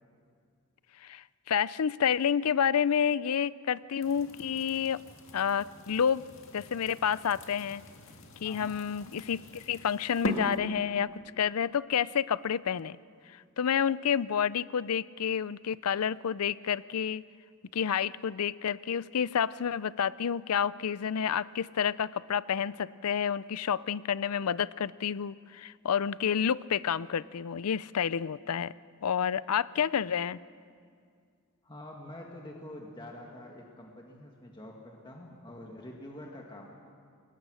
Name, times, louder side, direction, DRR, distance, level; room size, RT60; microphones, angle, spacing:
voice 1, 1.0-5.0 5.3-6.2 6.5-7.8 8.4-13.0 13.6-17.2 17.7-28.7 29.0-30.4, left 8 dB, 80° left, 19 dB, 0.5 m, -29 dB
sound 1, 4.0-10.6, left 1 dB, 60° left, 2.2 m, -40 dB
voice 2, 8.4-8.8 31.6-36.7, left 1 dB, 20° left, 0 dB, 1.8 m, -46 dB
28.5 x 21.0 x 6.3 m, 2.2 s
head